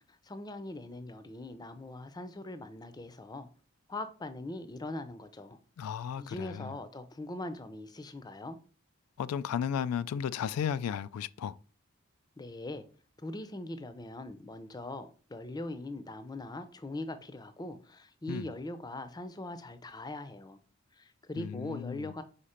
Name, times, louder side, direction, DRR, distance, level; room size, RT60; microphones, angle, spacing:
voice 1, 0.0-3.5 3.9-5.6 6.2-8.6 12.4-12.9 13.2-20.6 20.9-22.2, left 2 dB, 20° left, 0.5 m, -41 dB
voice 2, 5.8-6.7 9.2-11.5 18.3-18.5 21.4-22.1, left 8 dB, 90° left, 0.3 m, -34 dB
4.9 x 4.2 x 5.0 m
head